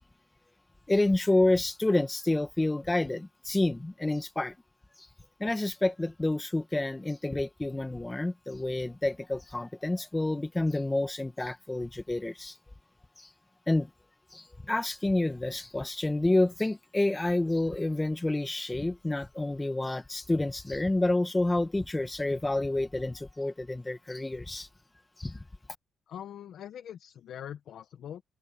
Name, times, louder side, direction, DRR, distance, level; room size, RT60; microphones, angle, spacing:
voice 1, 0.9-4.5 5.0-5.1 5.4-12.6 13.2-13.3 13.7-13.9 14.3-24.7 25.2-25.4, left 2 dB, 15° left, 1.5 m, -29 dB
voice 2, 26.1-28.2, left 9 dB, 70° left, 1.1 m, -42 dB
cardioid pair, 90°, 0 cm